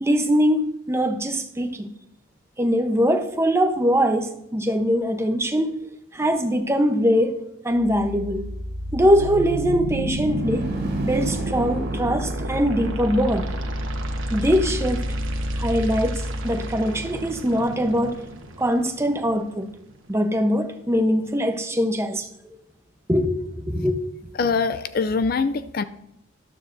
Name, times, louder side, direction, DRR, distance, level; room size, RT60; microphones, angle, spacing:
voice 1, 0.0-1.9 2.6-5.8 6.1-8.4 8.9-10.7 11.0-13.5 14.3-15.1 15.6-18.2 18.6-19.7 20.1-22.6 23.1-24.0, equal, 15° right, 0.8 m, -22 dB
sound 1, 7.7-19.7, right 1 dB, 75° right, 1.2 m, -29 dB
sound 2, 10.0-14.6, right 1 dB, 45° right, 2.4 m, -38 dB
voice 2, 24.4-25.8, left 4 dB, 45° left, 0.4 m, -23 dB
13.0 x 12.0 x 2.6 m
head